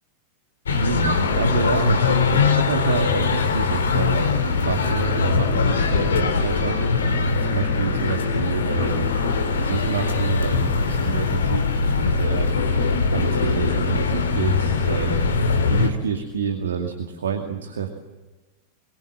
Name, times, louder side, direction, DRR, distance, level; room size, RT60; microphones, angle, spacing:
sound 1, 0.7-15.9, left 4 dB, 65° left, 2.5 m, -21 dB
voice 1, 0.8-4.3 4.6-7.2 7.5-9.1 9.6-12.5 13.1-15.2 15.7-17.9, right 6 dB, 65° right, 5 dB, 2.3 m, -28 dB
24.0 x 23.0 x 7.7 m, 1.2 s
figure-of-eight pair, 90°, 0 cm